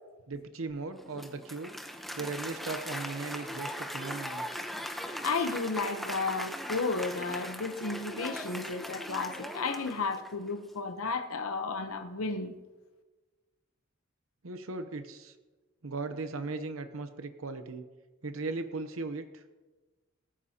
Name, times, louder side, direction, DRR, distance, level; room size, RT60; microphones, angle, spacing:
voice 1, 0.3-1.7 2.1-4.5 14.4-15.3 15.8-17.8 18.2-19.4, right 3 dB, 80° right, 0.8 m, -37 dB
Applause, 0.9-10.5, equal, ahead, 0.8 m, -39 dB
voice 2, 5.2-12.5, left 4 dB, 90° left, 0.9 m, -33 dB
19.0 x 13.5 x 2.9 m
head